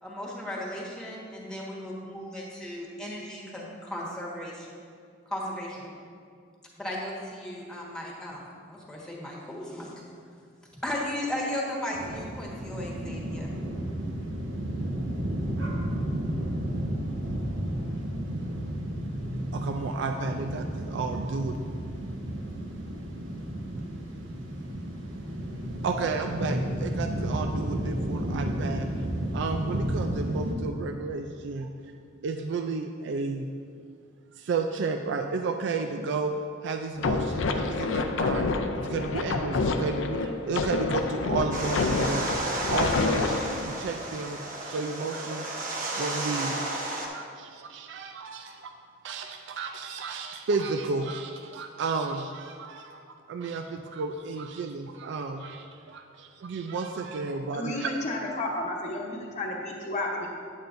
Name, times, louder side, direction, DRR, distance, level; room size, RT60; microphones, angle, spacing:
voice 1, 0.0-4.7 5.2-5.9 6.8-9.9 10.8-13.5, left 1 dB, 5° left, -5 dB, 1.4 m, -36 dB
sound 1, 11.9-30.6, right 1 dB, 85° right, 1.1 m, -32 dB
voice 2, 19.5-21.6 25.8-28.9 29.3-31.7 32.2-33.5 34.4-36.3 36.6-38.4 38.7-42.4 42.7-43.3 43.6-48.7 49.0-57.9, right 4 dB, 65° right, 5 dB, 0.4 m, -32 dB
sound 2, 37.0-43.6, left 3 dB, 75° left, 0.5 m, -28 dB
sound 3, 41.5-47.1, right 2 dB, 45° right, 1.0 m, -33 dB
voice 3, 57.5-60.3, left 2 dB, 35° left, -2 dB, 1.0 m, -32 dB
9.0 x 8.7 x 2.6 m, 2.2 s
head